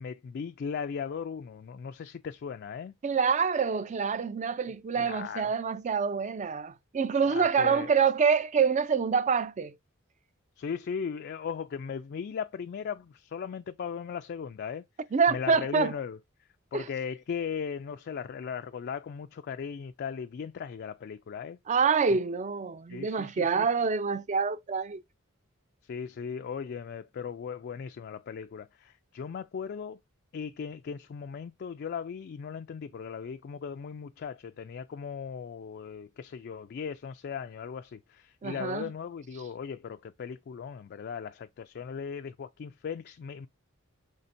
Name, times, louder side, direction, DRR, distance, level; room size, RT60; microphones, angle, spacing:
voice 1, 0.0-2.9 5.0-5.5 7.3-7.9 10.6-14.8 15.3-16.2 16.7-21.6 22.1-22.2 22.9-23.7 25.8-30.0 30.3-43.5, left 6 dB, 50° left, 0.3 m, -37 dB
voice 2, 3.0-9.7 15.1-15.9 16.7-16.9 21.7-25.0 38.4-38.8, right 5 dB, 35° right, 0.4 m, -26 dB
5.5 x 3.3 x 2.6 m
head